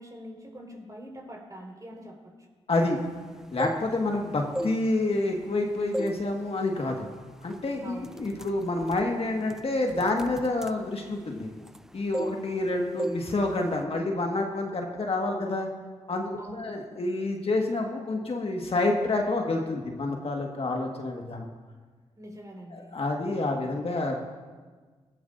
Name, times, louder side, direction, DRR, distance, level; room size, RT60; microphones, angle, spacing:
voice 1, 0.0-2.3 7.8-8.5 16.4-16.7 22.2-23.0, equal, 30° right, 0 dB, 4.6 m, -44 dB
voice 2, 2.7-3.0 3.5-7.1 7.4-11.5 11.9-15.7 16.1-21.5 22.7-24.2, left 2 dB, 50° left, 1 dB, 1.7 m, -28 dB
sound 1, 3.4-4.1 4.5-5.6 5.9-6.3 6.7-6.9 7.5-7.7 8.0-11.8 12.1-12.7 13.0-13.3 13.6-13.8, equal, 5° right, 0.5 m, -35 dB
18.0 x 13.0 x 2.6 m, 1.4 s
supercardioid pair, 45°, 12 cm